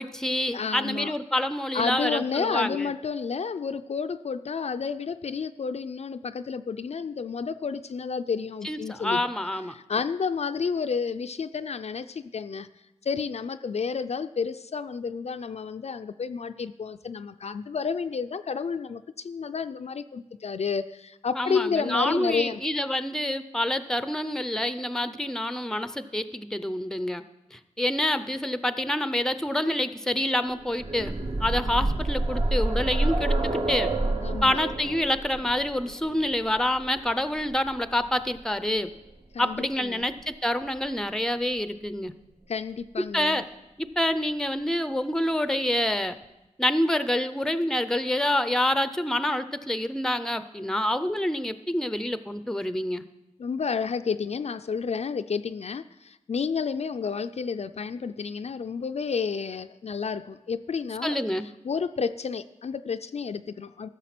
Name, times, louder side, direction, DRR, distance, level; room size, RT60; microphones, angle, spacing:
voice 1, 0.0-2.9 8.6-9.7 21.4-27.2 27.5-31.1 31.4-33.9 34.4-38.9 39.4-42.1 43.1-43.4 43.8-46.2 46.6-53.0 61.0-61.5, left 1 dB, 5° left, 12 dB, 0.5 m, -27 dB
voice 2, 0.5-1.1 1.7-9.2 9.7-12.7 13.0-22.6 31.8-31.9 34.2-34.6 39.3-40.1 42.5-43.4 53.4-61.2 61.6-63.9, left 5 dB, 55° left, 9 dB, 0.4 m, -31 dB
sound 1, 30.6-38.4 39.5-39.6 40.0-40.1, right 2 dB, 45° right, 1.0 m, -28 dB
14.0 x 6.5 x 5.9 m, 0.95 s
wide cardioid pair, 80°, 13 cm